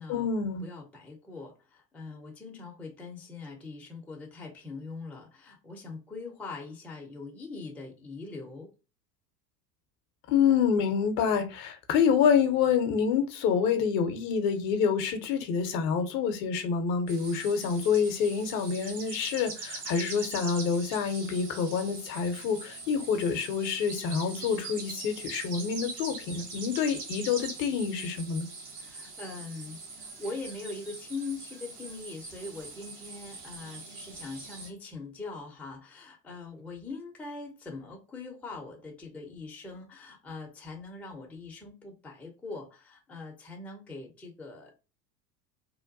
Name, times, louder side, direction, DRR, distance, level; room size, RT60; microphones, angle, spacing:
voice 1, 0.1-0.6 10.3-28.5, left 6 dB, 45° left, 0.6 m, -27 dB
voice 2, 0.6-8.7 28.8-44.7, left 3 dB, 5° left, 0.5 m, -42 dB
sound 1, 17.1-34.7, right 3 dB, 65° right, 1.4 m, -42 dB
2.9 x 2.2 x 2.5 m
hypercardioid pair, 80°, 48 cm